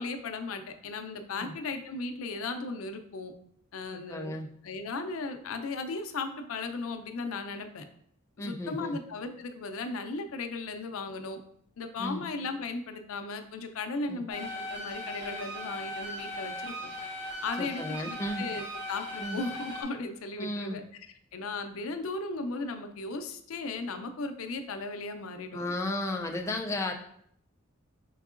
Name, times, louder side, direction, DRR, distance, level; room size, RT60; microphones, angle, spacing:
voice 1, 0.0-3.3 3.7-4.3 4.6-7.8 8.4-11.4 11.8-16.9 17.4-18.6 18.9-20.8 21.3-25.7, left 3 dB, 85° left, 7 dB, 0.5 m, -36 dB
voice 2, 3.9-4.5 8.4-9.0 12.0-12.2 14.1-14.2 17.6-18.4 19.2-19.4 20.4-20.8 25.5-26.9, left 1 dB, 15° left, 2 dB, 0.3 m, -34 dB
sound 1, 14.3-19.8, left 1 dB, 35° right, 1.6 m, -38 dB
4.5 x 3.6 x 2.4 m, 0.68 s
head